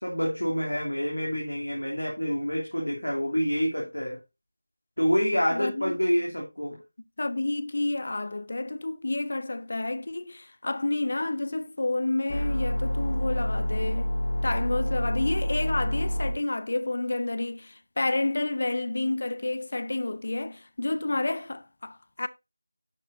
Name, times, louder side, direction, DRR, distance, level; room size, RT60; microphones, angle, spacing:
voice 1, 0.0-4.2 5.0-6.8, equal, 80° left, 3.1 m, -27 dB
voice 2, 5.5-5.9 7.2-14.1 14.4-22.3, left 2 dB, 45° left, 0.7 m, -30 dB
sound 1, 12.3-16.3, equal, 25° left, 2.0 m, -28 dB
11.5 x 7.6 x 2.7 m
figure-of-eight pair, 170°, 0 cm